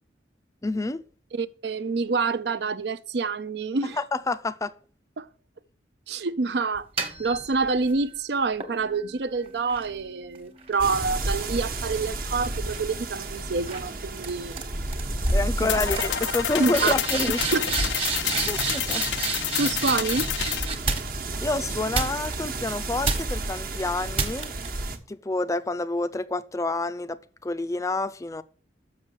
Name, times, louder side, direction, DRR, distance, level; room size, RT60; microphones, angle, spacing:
voice 1, 0.6-1.0 4.0-4.7 15.3-17.4 18.5-19.0 21.4-24.5 25.1-28.4, left 2 dB, 20° left, 0.4 m, -28 dB
voice 2, 1.3-4.0 5.2-5.3 6.1-6.9 7.2-14.6 15.6-15.7 16.6-16.9 17.5-17.7 19.6-20.3, right 4 dB, 70° right, 0.5 m, -27 dB
sound 1, 6.7-8.0 8.6-12.2 12.5-12.9 13.7-13.9 14.2-14.6 14.9-15.3 15.6-15.7 15.9-21.4 21.9-22.6 23.0-23.5 24.1-24.7, right 4 dB, 30° right, 1.3 m, -31 dB
sound 2, 10.8-25.0, right 2 dB, 55° right, 1.1 m, -32 dB
sound 3, 15.6-20.7, left 11 dB, 80° left, 0.5 m, -29 dB
6.8 x 6.3 x 7.0 m
head